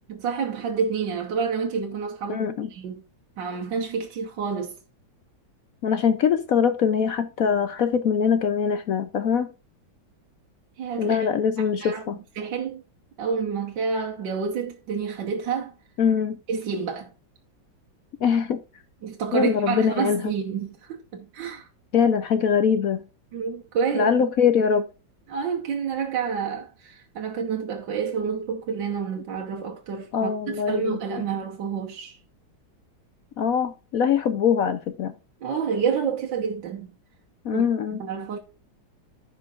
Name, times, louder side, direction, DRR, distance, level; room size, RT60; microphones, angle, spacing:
voice 1, 0.1-3.0 3.4-4.8 10.8-11.3 11.6-12.0 12.4-12.8 13.2-15.7 16.5-17.1 19.0-21.7 23.3-24.1 25.3-32.2 35.4-37.0 37.5-37.6 38.0-38.4, right 6 dB, 70° right, 1.7 m, -29 dB
voice 2, 2.3-2.7 5.8-9.5 11.0-12.2 16.0-16.4 18.2-18.6 19.3-20.3 21.9-23.0 23.9-24.9 30.1-31.0 33.4-35.1 37.4-38.0, left 7 dB, 65° left, 0.9 m, -22 dB
15.0 x 5.3 x 2.4 m
omnidirectional pair, 2.1 m